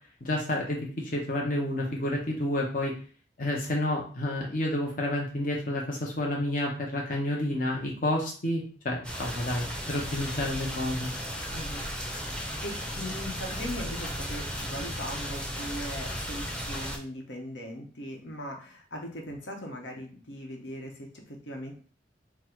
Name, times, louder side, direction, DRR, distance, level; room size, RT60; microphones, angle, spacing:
voice 1, 0.2-2.9 3.4-11.1, left 1 dB, 50° left, -1 dB, 0.8 m, -30 dB
sound 1, 9.0-17.0, equal, 5° left, 0.6 m, -35 dB
voice 2, 11.5-11.9 12.6-21.8, equal, 85° left, 1 dB, 1.0 m, -39 dB
3.9 x 2.2 x 4.4 m, 0.40 s
head